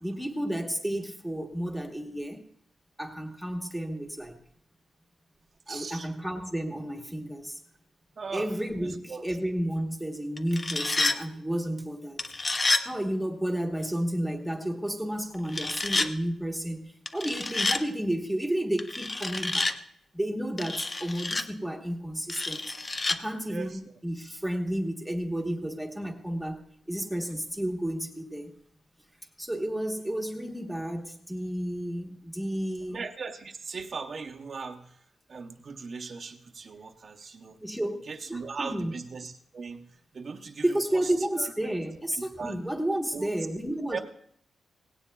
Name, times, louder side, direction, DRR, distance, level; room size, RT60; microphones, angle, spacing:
voice 1, 0.0-2.4 3.0-4.4 5.7-7.6 8.3-12.2 12.8-19.7 20.1-22.6 23.1-26.6 26.9-28.5 29.4-33.0 37.6-38.0 38.3-38.9 40.6-44.0, right 1 dB, ahead, 3 dB, 1.1 m, -31 dB
voice 2, 5.7-6.1 8.2-8.5 8.8-9.2 23.5-23.8 32.9-35.0 35.3-37.6 38.1-39.9 40.1-41.1 41.4-41.5 42.4-42.6 43.1-43.3 43.9-44.0, right 5 dB, 40° right, 4 dB, 0.7 m, -38 dB
sound 1, 10.4-11.2 12.2-12.9 15.5-16.1 17.1-17.8 18.8-19.8 20.6-21.4 22.3-23.2, left 3 dB, 20° left, 0.5 m, -28 dB
18.0 x 17.0 x 2.3 m, 0.69 s
wide cardioid pair, 175°, 0 cm